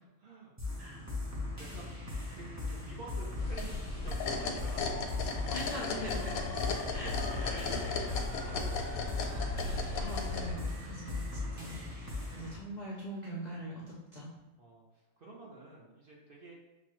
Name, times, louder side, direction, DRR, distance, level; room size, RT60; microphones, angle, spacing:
voice 1, 0.2-1.0 1.6-1.9 2.3-5.5 6.7-9.2 14.6-16.5, right 2 dB, 50° right, -4 dB, 0.8 m, -50 dB
sound 1, 0.6-12.6, left 2 dB, 15° right, 0.6 m, -39 dB
sound 2, 3.4-10.5, left 4 dB, 85° left, 1.1 m, -35 dB
sound 3, 3.4-12.2, right 4 dB, 85° right, 0.4 m, -53 dB
voice 2, 5.5-6.5 6.9-7.1 7.4-7.6 10.0-11.2 11.5-14.3, equal, 50° left, -5 dB, 0.5 m, -42 dB
5.9 x 2.4 x 3.0 m, 1.0 s
omnidirectional pair, 1.5 m